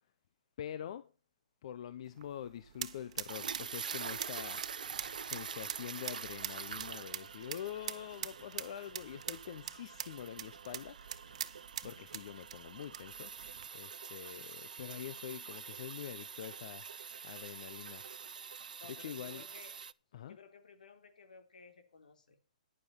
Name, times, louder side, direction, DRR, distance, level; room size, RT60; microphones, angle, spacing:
voice 1, 0.6-1.1 1.6-4.6 5.2-13.5 13.7-16.9 17.2-18.0 18.8-19.4 20.1-20.4, left 10 dB, 50° left, 12 dB, 0.9 m, -45 dB
sound 1, 2.0-13.7, right 10 dB, 55° right, 1.2 m, -45 dB
sound 2, 3.3-19.9, right 6 dB, 85° right, 0.7 m, -46 dB
voice 2, 18.8-19.7 20.2-22.4, left 5 dB, 85° left, 7 dB, 4.0 m, -56 dB
15.0 x 11.0 x 4.3 m, 0.34 s
hypercardioid pair, 160°, 4 cm